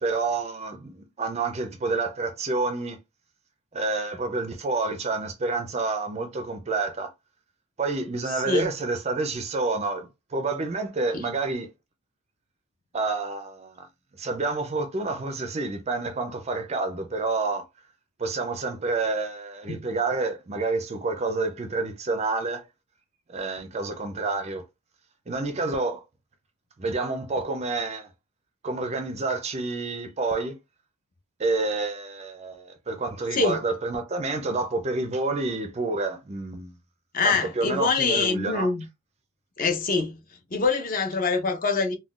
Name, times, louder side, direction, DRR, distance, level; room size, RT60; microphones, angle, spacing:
voice 1, 0.0-3.0 3.7-7.1 7.8-11.7 12.9-13.9 14.2-17.6 18.2-22.7 23.3-24.6 25.3-26.0 26.8-28.1 28.6-30.6 31.4-36.7 37.2-38.7, right 3 dB, 30° right, 0.4 m, -28 dB
voice 2, 37.1-38.8 39.6-40.2 40.5-41.9, left 4 dB, 40° left, 0.6 m, -24 dB
3.6 x 2.2 x 2.3 m
head